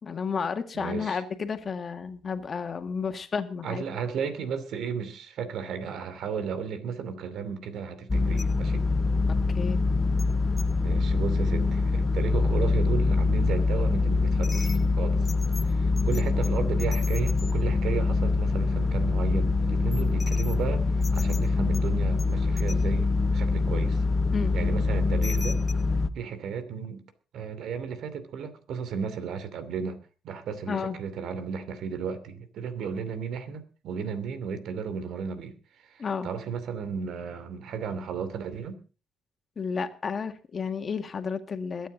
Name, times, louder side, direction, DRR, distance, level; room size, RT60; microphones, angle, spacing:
voice 1, 0.0-3.8 9.3-9.8 24.3-24.6 30.7-31.0 36.0-36.3 39.6-41.9, left 5 dB, 45° left, 8 dB, 1.9 m, -32 dB
voice 2, 0.7-1.2 3.6-8.8 10.8-15.2 15.7-20.8 21.1-24.0 24.5-25.6 26.1-27.0 27.3-30.0 30.2-35.6 35.8-38.8, right 6 dB, 75° right, 11 dB, 2.7 m, -34 dB
sound 1, 8.1-26.1, left 3 dB, 25° left, 1.2 m, -24 dB
22.0 x 9.4 x 4.0 m, 0.35 s
cardioid pair, 90°, 0 cm